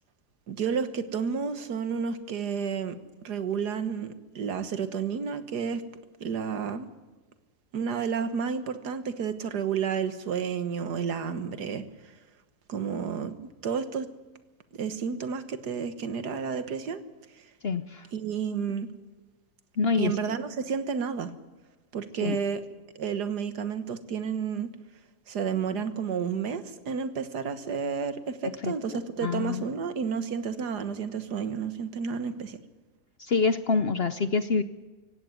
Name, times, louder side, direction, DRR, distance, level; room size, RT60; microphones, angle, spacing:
voice 1, 0.5-3.0 3.2-5.8 6.2-6.9 7.7-11.8 12.7-13.4 13.6-14.1 14.7-17.0 18.1-18.9 20.0-21.3 21.9-22.6 23.0-24.7 25.3-32.6, right 6 dB, 80° right, 11 dB, 1.9 m, -31 dB
voice 2, 17.6-18.1 19.8-20.4 22.2-22.4 28.6-29.6 33.2-34.6, left 4 dB, 50° left, 12 dB, 0.8 m, -27 dB
17.0 x 17.0 x 9.5 m, 1.2 s
omnidirectional pair, 1.7 m